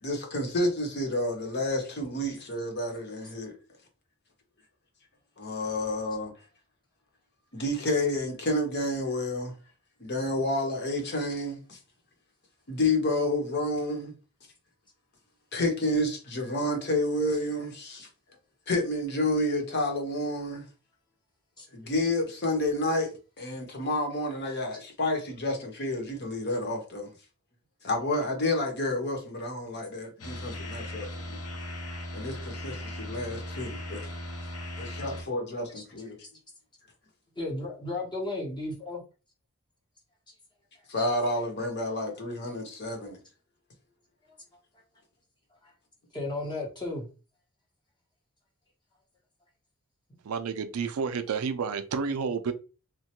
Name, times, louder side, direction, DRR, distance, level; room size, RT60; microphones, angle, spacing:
voice 1, 0.0-3.5 5.4-6.3 7.5-9.5 10.0-11.8 12.7-14.1 15.5-18.1 18.7-20.6 21.7-27.1 27.8-31.4 32.1-34.0 34.8-36.2 40.9-43.2, left 1 dB, 55° left, 0.9 m, -30 dB
sound 1, 30.2-35.2, left 1 dB, 85° left, 0.8 m, -38 dB
voice 2, 37.4-39.0 45.6-45.7 46.1-47.1, left 2 dB, 20° left, 0.8 m, -34 dB
voice 3, 50.2-52.5, right 5 dB, 85° right, 0.4 m, -30 dB
3.1 x 2.2 x 2.9 m
head